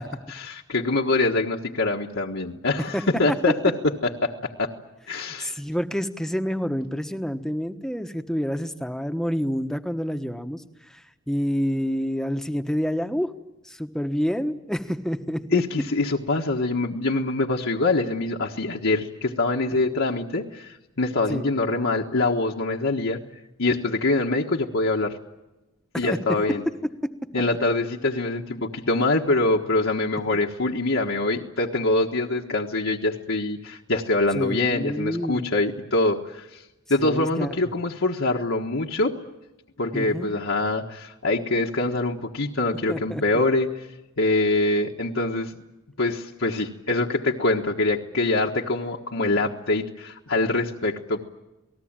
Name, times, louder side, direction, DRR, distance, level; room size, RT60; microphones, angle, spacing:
voice 1, 0.0-3.5 4.2-4.3 4.6-4.7 5.1-5.6 15.5-23.2 23.6-25.2 25.9-26.6 27.3-36.6 36.9-39.1 39.8-43.8 44.2-45.5 46.0-51.2, left 2 dB, 65° left, -1 dB, 1.5 m, -24 dB
voice 2, 2.9-3.3 5.1-13.3 13.6-15.6 21.3-21.5 25.9-26.1 34.3-35.5 37.0-37.5 39.9-40.3 42.9-43.2, equal, ahead, 8 dB, 1.2 m, -28 dB
28.5 x 19.5 x 8.9 m, 1.0 s
head